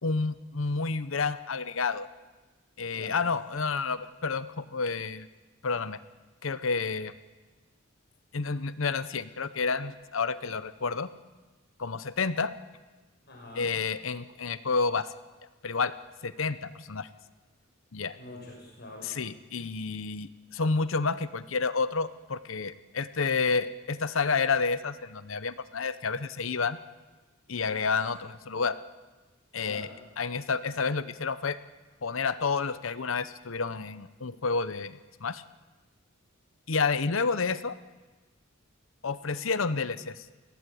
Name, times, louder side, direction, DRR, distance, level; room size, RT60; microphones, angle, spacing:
voice 1, 0.0-2.1 2.8-5.3 5.6-6.0 6.4-7.1 8.3-11.1 11.8-12.5 13.6-15.1 15.6-15.9 16.2-17.1 17.9-18.2 19.0-26.8 27.5-28.8 29.5-29.9 30.2-31.6 32.0-35.4 36.7-37.8 39.0-40.2, left 4 dB, 70° left, 14 dB, 0.9 m, -30 dB
voice 2, 13.3-13.7 18.1-19.2 29.6-29.9, left 1 dB, 50° left, -2 dB, 6.1 m, -45 dB
21.5 x 17.0 x 8.5 m, 1.3 s
head